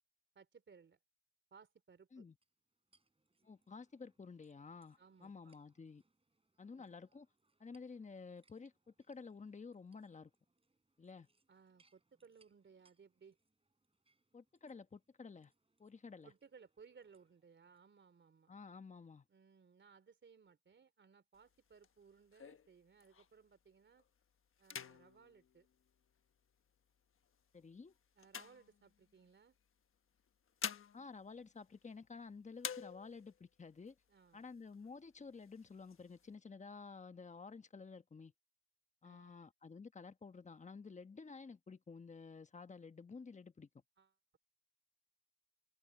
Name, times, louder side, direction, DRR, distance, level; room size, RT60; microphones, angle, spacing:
voice 1, 0.3-1.0 1.5-2.2 5.0-5.5 6.8-6.9 11.5-13.4 16.2-18.5 19.3-24.0 24.6-25.7 28.2-29.5 34.1-34.4 39.0-39.4 44.0-44.4, right 6 dB, 40° right, 3.4 m, -63 dB
sound 1, 2.4-17.8, right 3 dB, 20° right, 7.3 m, -80 dB
voice 2, 3.4-6.0 6.6-7.3 7.6-10.3 11.0-11.3 14.3-15.5 15.8-16.3 18.5-19.2 27.5-27.9 30.9-33.9 34.3-38.3 39.0-43.7, left 4 dB, 25° left, 1.2 m, -52 dB
sound 2, 21.3-23.5 24.0-24.2 24.6-26.5 27.2-29.3 30.2-32.2 32.6-33.4 33.9-34.0 34.2-34.9 35.4-36.3, left 7 dB, 45° left, 1.2 m, -49 dB
open air
cardioid pair, 90°, 30 cm